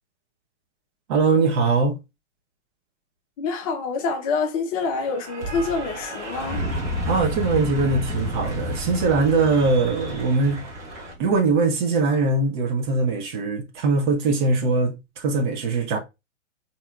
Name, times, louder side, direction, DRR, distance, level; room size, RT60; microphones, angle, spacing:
voice 1, 1.1-2.0 7.1-10.6 11.2-16.0, right 3 dB, 40° right, 1.0 m, -21 dB
voice 2, 3.4-6.7, left 4 dB, 30° left, 0.6 m, -26 dB
Cheering / Applause, 4.8-11.1, right 2 dB, 10° right, 0.3 m, -38 dB
Fire, 6.3-11.5, left 1 dB, 75° right, 1.3 m, -31 dB
4.4 x 2.9 x 2.4 m
figure-of-eight pair, 110°, 38 cm